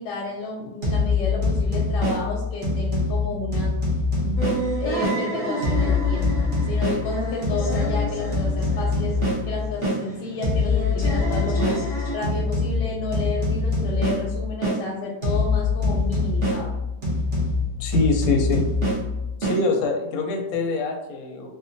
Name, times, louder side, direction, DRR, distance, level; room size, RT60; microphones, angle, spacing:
voice 1, 0.0-3.7 4.2-4.4 4.8-6.3 6.7-9.1 9.4-11.8 12.1-16.7, left 3 dB, 85° left, -3 dB, 1.2 m, -31 dB
sound 1, 0.8-5.2 5.6-10.0 10.4-14.8 15.2-19.6, left 3 dB, 50° right, 1.1 m, -24 dB
sound 2, 4.4-12.2, right 1 dB, 25° left, 0.5 m, -31 dB
voice 2, 17.8-18.6 19.4-21.5, left 3 dB, 70° left, 2 dB, 0.9 m, -24 dB
3.5 x 2.1 x 2.6 m, 0.95 s
omnidirectional pair, 1.8 m